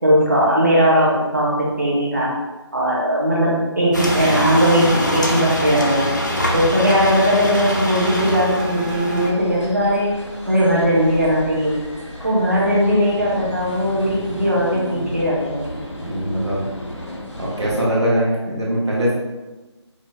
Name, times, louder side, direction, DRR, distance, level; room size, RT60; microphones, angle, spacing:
voice 1, 0.0-2.3 2.7-6.1 6.5-10.1 10.5-11.8 12.2-15.7, equal, 35° right, -7 dB, 0.7 m, -18 dB
sound 1, 3.9-9.3, equal, 40° left, 0.4 m, -23 dB
sound 2, 8.4-17.8, equal, 85° left, 1.2 m, -34 dB
voice 2, 16.0-16.6 17.4-19.1, equal, 70° right, -6 dB, 1.3 m, -21 dB
4.8 x 2.1 x 2.6 m, 1.2 s
figure-of-eight pair, 180°, 15 cm